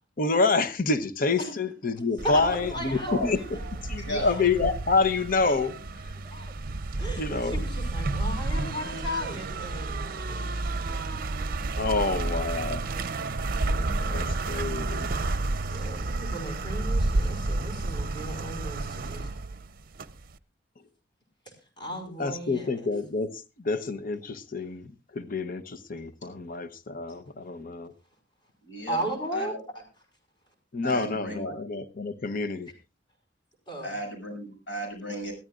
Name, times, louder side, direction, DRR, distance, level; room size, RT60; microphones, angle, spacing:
voice 1, 0.2-5.7 7.2-7.6 11.8-12.8 14.1-15.1 22.2-27.9 30.7-32.7, left 3 dB, 50° left, 0.8 m, -28 dB
voice 2, 2.2-3.8 4.2-4.3 6.3-6.5 7.0-11.0 11.9-12.2 13.7-14.2 15.6-19.3 21.8-22.9 28.9-29.8 33.7-33.9, equal, 25° left, 5.2 m, -36 dB
sound 1, 2.2-20.3, right 2 dB, 50° right, 0.7 m, -31 dB
voice 3, 3.1-3.4 4.0-4.4 28.6-29.0 29.3-29.6 30.8-31.6 33.8-35.3, equal, 80° left, 6.8 m, -34 dB
22.0 x 14.0 x 2.4 m
head